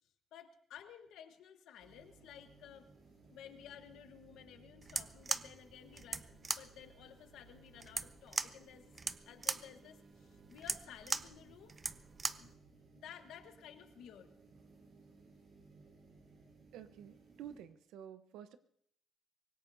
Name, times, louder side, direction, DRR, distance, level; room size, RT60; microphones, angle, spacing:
voice 1, 0.3-2.9 3.3-11.7 12.4-12.5 12.9-14.3, left 9 dB, 85° left, 8 dB, 1.2 m, -55 dB
sound 1, 1.8-17.6, right 4 dB, 70° right, 7.9 m, -62 dB
sound 2, 4.8-12.5, right 4 dB, 35° right, 0.6 m, -40 dB
voice 2, 16.7-18.6, right 9 dB, 90° right, 11 dB, 0.9 m, -50 dB
24.5 x 19.0 x 2.7 m, 0.69 s
cardioid pair, 90°, 0 cm